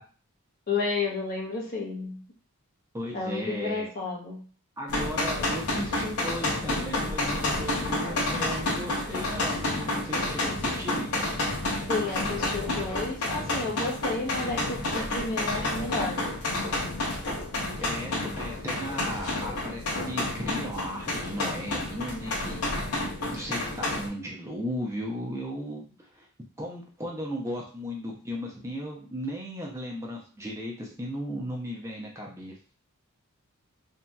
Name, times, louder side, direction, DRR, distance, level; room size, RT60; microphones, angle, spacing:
voice 1, 0.7-2.2 3.1-4.4 11.9-16.6, left 3 dB, 45° left, -1 dB, 0.8 m, -31 dB
voice 2, 2.9-3.9 4.8-9.7 10.0-11.1 17.8-18.1 18.4-22.7 23.3-26.3 26.6-32.5, equal, 15° right, -2 dB, 0.5 m, -36 dB
sound 1, 4.9-24.1, left 2 dB, 80° left, 0.7 m, -30 dB
2.8 x 2.7 x 2.2 m, 0.39 s
head